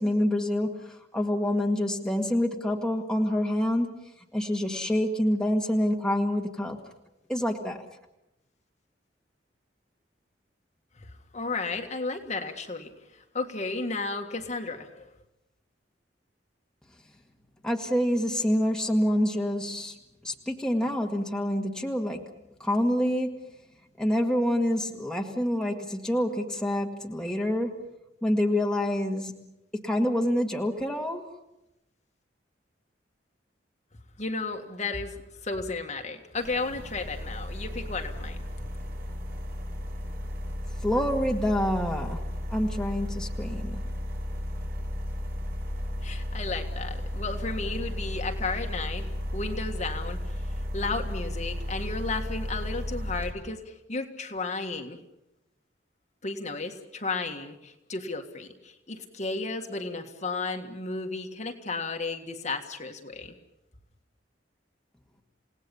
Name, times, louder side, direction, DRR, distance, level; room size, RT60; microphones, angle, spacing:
voice 1, 0.0-6.8 7.3-7.9 17.6-20.0 20.2-22.3 22.6-23.4 24.0-27.9 28.2-29.4 29.7-31.2 40.8-43.8, left 1 dB, 5° left, 1 dB, 1.9 m, -27 dB
voice 2, 11.3-12.9 13.3-15.1 34.2-35.1 35.4-38.4 46.0-50.2 50.7-55.0 56.2-63.3, left 3 dB, 40° left, 4 dB, 1.9 m, -33 dB
sound 1, 36.4-53.3, left 1 dB, 55° right, 4.4 m, -34 dB
29.0 x 18.0 x 7.1 m, 0.89 s
head